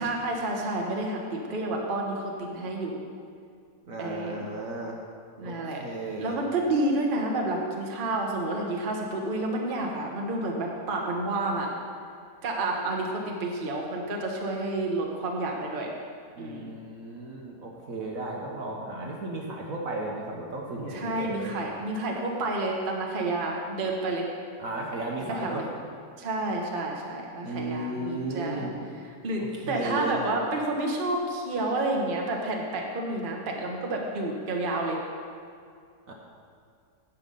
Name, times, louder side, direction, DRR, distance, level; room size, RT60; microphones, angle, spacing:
voice 1, 0.0-3.0 4.0-4.5 5.4-5.8 6.2-11.7 12.4-15.9 16.4-16.7 18.9-19.1 20.9-24.3 25.3-25.7 26.2-28.7 29.2-35.0, right 2 dB, 35° right, 0 dB, 1.1 m, -30 dB
voice 2, 3.9-5.0 5.4-6.4 16.3-21.6 24.6-25.6 27.4-28.7 29.4-30.2 36.1-36.2, right 2 dB, 55° right, -1 dB, 1.3 m, -35 dB
9.8 x 7.5 x 5.4 m, 2.2 s
omnidirectional pair, 1.9 m